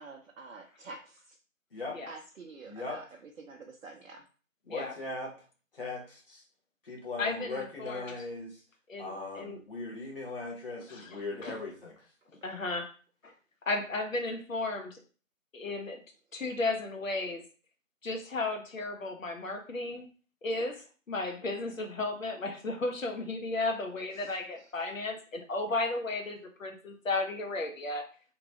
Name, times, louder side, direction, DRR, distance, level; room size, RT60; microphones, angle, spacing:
voice 1, 0.0-1.4 2.1-3.0 3.4-4.2 11.3-11.5 24.1-24.4, right 3 dB, 75° right, 3 dB, 0.5 m, -48 dB
voice 2, 2.6-3.0 4.6-5.3 5.7-6.4 6.8-8.6 9.0-12.1, left 3 dB, 45° left, -3 dB, 0.8 m, -39 dB
voice 3, 7.2-8.1 8.9-9.6 11.4-11.5 12.4-12.9 13.2-13.3 13.7-15.0 15.5-16.0 16.3-17.4 18.0-20.1 20.4-20.8 21.1-28.1, left 2 dB, 75° left, 4 dB, 0.8 m, -34 dB
2.8 x 2.3 x 2.7 m, 0.38 s
figure-of-eight pair, 160°, 40 cm